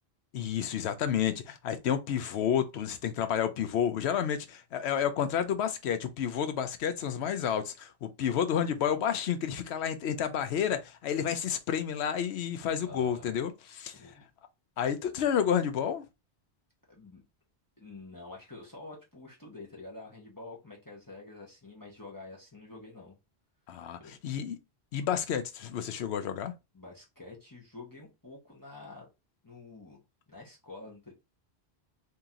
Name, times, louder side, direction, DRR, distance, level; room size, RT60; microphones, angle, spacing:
voice 1, 0.3-14.1 14.8-16.0 23.7-24.6 24.9-26.5, left 8 dB, 85° left, 0.9 m, -30 dB
voice 2, 12.8-13.3 13.9-14.2 16.9-17.2 17.8-23.2 24.0-24.1 26.7-29.1 29.4-30.0 30.3-31.1, left 3 dB, 20° left, 1.0 m, -48 dB
2.8 x 2.8 x 3.7 m
omnidirectional pair, 1.1 m